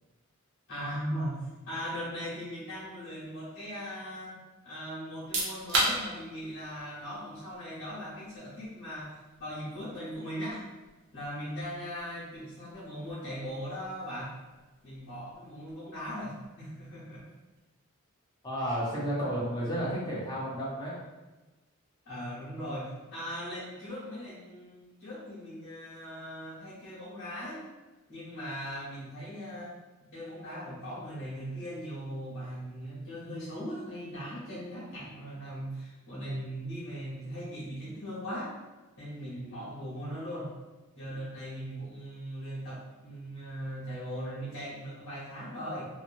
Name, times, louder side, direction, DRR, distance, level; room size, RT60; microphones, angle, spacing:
voice 1, 0.7-4.4 4.6-10.7 11.1-14.4 14.8-17.3 22.0-27.6 28.1-29.8 30.1-38.6 39.0-40.5 41.0-45.9, equal, 85° left, -12 dB, 1.1 m, -39 dB
sound 1, 5.1-17.7, right 2 dB, 55° right, 0.6 m, -39 dB
voice 2, 18.4-20.9 22.6-22.7, equal, 20° left, -7 dB, 0.7 m, -32 dB
2.9 x 2.2 x 2.5 m, 1.2 s
head